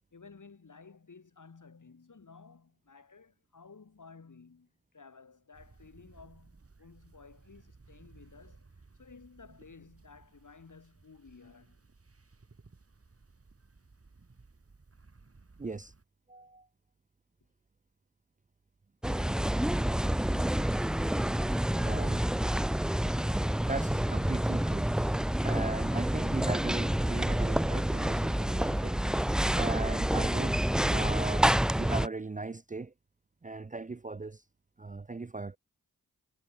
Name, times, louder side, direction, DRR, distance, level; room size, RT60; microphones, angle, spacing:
voice 1, 0.1-11.8, left 4 dB, 55° left, 7.6 m, -55 dB
sound 1, 5.5-16.0, right 3 dB, 40° right, 3.9 m, -59 dB
voice 2, 15.6-15.9 16.3-16.7 21.8-22.3 23.6-24.9 25.4-29.0 29.6-30.6 30.9-32.9 33.4-34.4 34.8-35.6, right 3 dB, 20° right, 0.7 m, -38 dB
sound 2, 19.0-32.1, right 1 dB, ahead, 0.3 m, -28 dB
cardioid pair, 45°, 36 cm